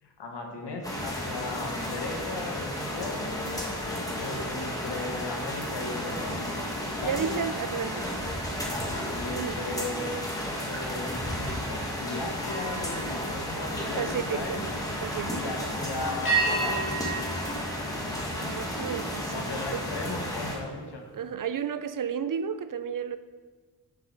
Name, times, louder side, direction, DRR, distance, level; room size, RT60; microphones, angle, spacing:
voice 1, 0.0-3.6 4.2-6.4 6.8-7.4 8.7-10.2 10.6-14.7 15.3-17.0 19.3-21.1, left 2 dB, 85° left, 1.4 m, -37 dB
sound 1, 0.8-20.6, equal, 10° left, 1.8 m, -33 dB
voice 2, 7.0-8.2 9.3-9.6 14.0-14.7 15.0-15.7 18.4-19.4 19.7-19.8 21.1-23.2, right 7 dB, 55° right, 0.5 m, -32 dB
sound 2, 12.4-14.5 16.2-18.8, right 3 dB, 60° left, 2.3 m, -35 dB
9.1 x 5.4 x 4.8 m
cardioid pair, 55°, 40 cm